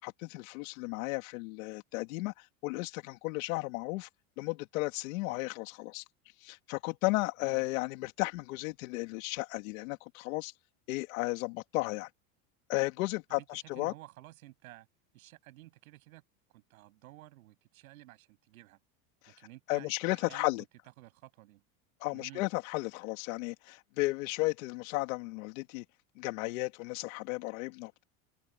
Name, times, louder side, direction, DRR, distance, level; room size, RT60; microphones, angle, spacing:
voice 1, 0.0-4.1 4.4-6.0 6.4-10.5 10.9-12.1 12.7-13.9 19.2-19.3 19.7-20.6 22.0-25.8 26.2-28.0, left 23 dB, 75° left, 3.0 m, -34 dB
voice 2, 13.3-14.9 15.1-16.2 16.5-18.8 19.3-20.5 21.0-21.6 22.1-22.5, right 17 dB, 90° right, 7.8 m, -53 dB
open air
supercardioid pair, 130°, 41 cm